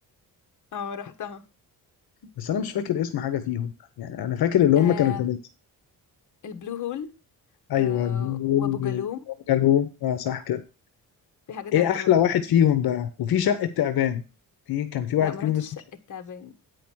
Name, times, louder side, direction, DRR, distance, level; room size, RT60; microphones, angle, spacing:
voice 1, 0.7-1.4 4.8-5.2 6.4-7.1 7.7-9.2 11.5-12.1 15.2-15.7 16.1-16.5, left 8 dB, 55° left, 1.3 m, -35 dB
voice 2, 2.4-3.7 4.0-5.4 7.7-9.0 9.5-10.6 11.7-14.2 14.7-15.6, left 10 dB, 75° left, 0.9 m, -23 dB
9.3 x 5.1 x 6.1 m
cardioid pair, 125°, 37 cm